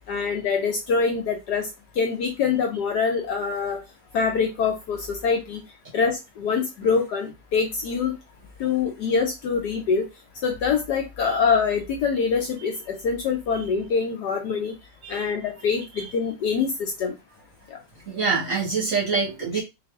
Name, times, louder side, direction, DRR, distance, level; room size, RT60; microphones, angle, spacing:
voice 1, 0.1-1.7 2.0-3.8 4.1-5.6 5.9-8.2 8.6-10.1 10.4-14.7 15.1-17.1 17.7-17.8, left 5 dB, 70° left, 3 dB, 1.0 m, -24 dB
voice 2, 15.0-15.5 16.0-16.1 18.1-19.6, right 5 dB, 50° right, 0 dB, 1.0 m, -26 dB
3.9 x 2.5 x 3.5 m, 0.24 s
omnidirectional pair, 2.2 m